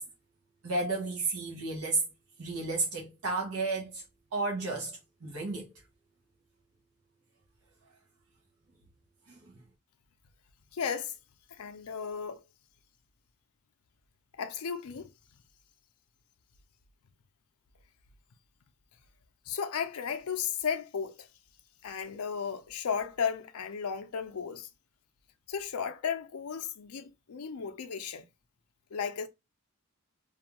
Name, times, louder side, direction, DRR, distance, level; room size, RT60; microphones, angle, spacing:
voice 1, 0.6-2.0 2.4-4.0 4.3-5.7 9.3-9.4, right 3 dB, 70° right, 0.9 m, -32 dB
voice 2, 10.7-11.1 11.6-12.4 14.3-15.1 19.5-21.3 21.8-24.7 25.5-28.2 28.9-29.3, left 6 dB, 80° left, 0.5 m, -34 dB
2.5 x 2.3 x 2.8 m
head